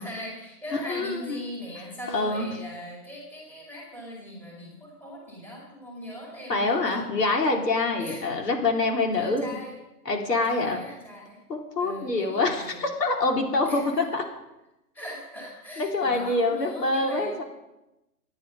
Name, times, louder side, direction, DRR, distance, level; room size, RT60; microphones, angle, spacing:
voice 1, 0.0-7.0 8.0-8.3 9.1-9.7 10.4-11.4 11.8-12.8 13.6-14.0 14.9-17.4, equal, 5° left, -3 dB, 2.2 m, -40 dB
voice 2, 0.7-1.4 2.1-2.5 6.5-9.5 10.1-10.8 11.5-14.2 15.8-17.4, left 3 dB, 80° left, 2 dB, 4.1 m, -25 dB
24.5 x 9.8 x 5.2 m, 0.95 s
hypercardioid pair, 165°, 48 cm